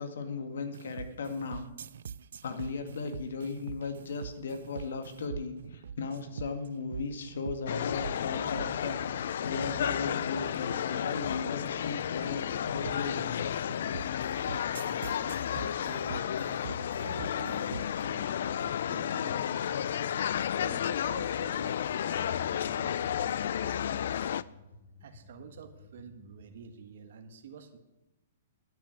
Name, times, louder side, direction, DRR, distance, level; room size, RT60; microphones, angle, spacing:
voice 1, 0.0-1.6 2.4-14.1, left 4 dB, 80° left, 7 dB, 2.0 m, -37 dB
sound 1, 0.7-18.0, right 7 dB, 70° right, 0.4 m, -44 dB
sound 2, 7.7-24.4, left 9 dB, 60° left, 0.4 m, -32 dB
voice 2, 15.0-20.2 20.6-24.0 25.0-27.8, right 6 dB, 55° right, 5 dB, 1.4 m, -49 dB
sound 3, 16.2-26.7, left 2 dB, 20° left, 1.3 m, -55 dB
10.5 x 7.6 x 9.4 m, 0.98 s
hypercardioid pair, 170°, 0 cm